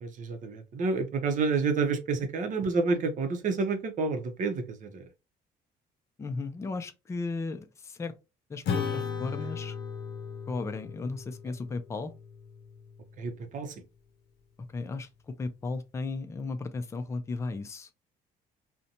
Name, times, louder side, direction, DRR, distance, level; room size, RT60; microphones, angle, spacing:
voice 1, 0.0-5.0 13.2-13.7, right 4 dB, 50° right, 0.6 m, -29 dB
voice 2, 6.2-8.1 8.5-9.8 10.5-12.1 14.7-17.9, left 3 dB, 15° left, 0.4 m, -35 dB
Acoustic guitar / Strum, 8.6-13.4, left 6 dB, 85° left, 0.6 m, -36 dB
2.5 x 2.1 x 2.8 m
cardioid pair, 110°, 17 cm